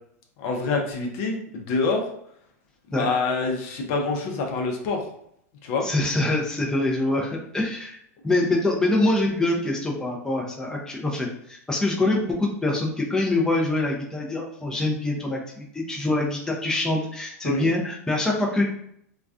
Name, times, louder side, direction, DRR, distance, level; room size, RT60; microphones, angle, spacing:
voice 1, 0.4-2.0 3.0-5.0 5.6-5.9 17.4-17.7, left 3 dB, 55° left, 1 dB, 0.6 m, -26 dB
voice 2, 5.8-8.0 8.2-18.6, left 2 dB, 5° left, -1 dB, 0.5 m, -25 dB
2.3 x 2.2 x 2.4 m, 0.71 s
hypercardioid pair, 95°, 9 cm